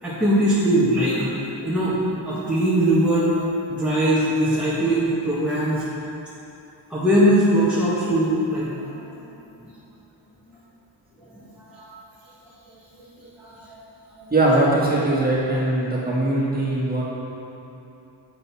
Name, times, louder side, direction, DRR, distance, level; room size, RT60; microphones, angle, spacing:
voice 1, 0.0-5.8 6.9-9.1 9.6-9.7 11.3-11.9 12.7-13.8 14.2-14.3, right 1 dB, ahead, -10 dB, 1.4 m, -22 dB
voice 2, 14.3-17.0, right 2 dB, 20° right, -7 dB, 1.9 m, -21 dB
7.7 x 5.4 x 5.8 m, 3.0 s
wide cardioid pair, 100°, 47 cm